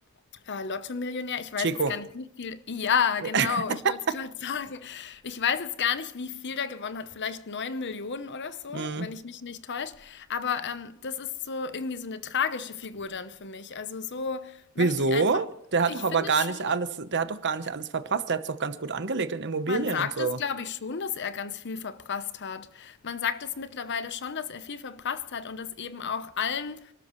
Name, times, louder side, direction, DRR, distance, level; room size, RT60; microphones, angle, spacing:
voice 1, 0.4-15.3 15.9-16.8 19.7-26.9, left 6 dB, 55° left, 0.8 m, -32 dB
voice 2, 1.6-1.9 3.3-3.6 8.7-9.1 14.8-20.4, right 4 dB, 55° right, 1.0 m, -27 dB
28.5 x 13.0 x 3.1 m
head